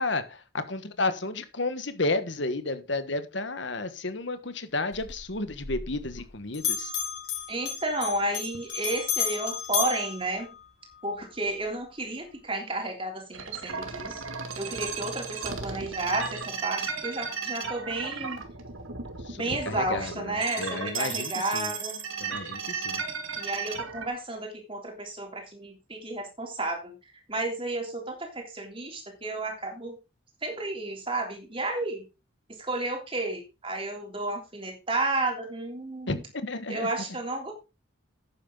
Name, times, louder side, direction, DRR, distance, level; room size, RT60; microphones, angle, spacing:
voice 1, 0.0-6.9 19.3-19.4 19.6-21.7 22.2-23.0 36.1-36.9, left 2 dB, 60° left, 1.4 m, -32 dB
Bell, 4.9-6.3 6.5-11.0, left 7 dB, 85° left, 6.1 m, -33 dB
voice 2, 7.5-10.5 11.0-14.2 14.6-18.4 19.4-22.0 23.4-27.0 27.3-30.0 30.4-32.0 32.6-36.2 36.7-37.5, right 2 dB, 25° right, 3.3 m, -32 dB
sound 1, 13.3-24.1, right 5 dB, 85° right, 2.2 m, -35 dB
11.5 x 9.0 x 3.9 m
head